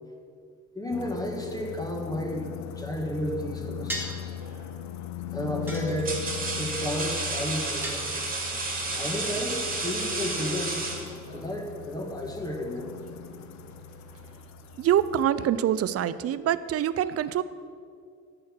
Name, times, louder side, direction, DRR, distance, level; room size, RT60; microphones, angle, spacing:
voice 1, 0.7-2.5 2.8-4.3 5.3-6.2 6.6-8.1 9.0-10.8 11.3-12.9, equal, 10° left, 2 dB, 1.5 m, -32 dB
sound 1, 0.9-15.2, left 11 dB, 65° left, 0.5 m, -40 dB
sound 2, 3.9-4.3 5.7-6.4 7.8-8.6, right 1 dB, 5° right, 2.1 m, -36 dB
sound 3, 4.4-4.7 5.5-11.5, right 3 dB, 30° right, 2.1 m, -32 dB
voice 2, 14.8-17.4, right 10 dB, 50° right, 15 dB, 0.5 m, -25 dB
11.0 x 7.6 x 4.5 m, 2.3 s
cardioid pair, 90°, 30 cm